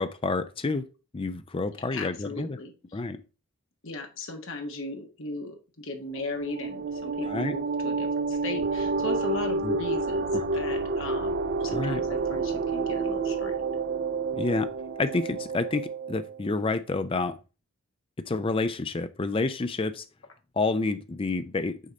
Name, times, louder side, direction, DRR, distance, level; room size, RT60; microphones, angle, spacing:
voice 1, 0.0-2.6 2.9-3.2 7.2-7.6 9.6-9.8 10.3-10.4 11.7-12.0 14.3-14.7 15.0-17.4 18.2-20.0 20.6-21.8, left 3 dB, 25° left, 0.4 m, -29 dB
voice 2, 1.9-2.7 3.8-11.3 11.6-13.5, left 2 dB, 60° left, 1.4 m, -37 dB
sound 1, 6.1-16.4, right 3 dB, 45° right, 0.4 m, -29 dB
6.4 x 3.9 x 4.1 m
head